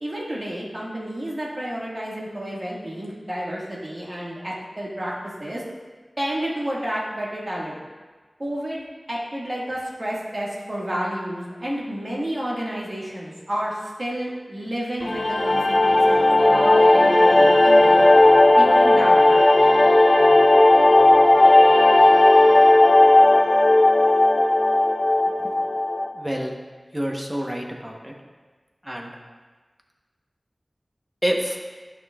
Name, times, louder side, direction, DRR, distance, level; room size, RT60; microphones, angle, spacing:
voice 1, 0.0-5.1 5.4-5.6 6.2-7.8 8.4-18.0 18.5-19.5, equal, 50° right, -5 dB, 1.8 m, -30 dB
sound 1, 15.0-26.1, left 2 dB, 55° left, 0.7 m, -15 dB
voice 2, 26.2-26.5 26.9-28.1 28.9-29.1 31.2-31.6, equal, 10° right, 1 dB, 1.0 m, -27 dB
10.5 x 5.9 x 2.4 m, 1.4 s
wide cardioid pair, 45°, 0 cm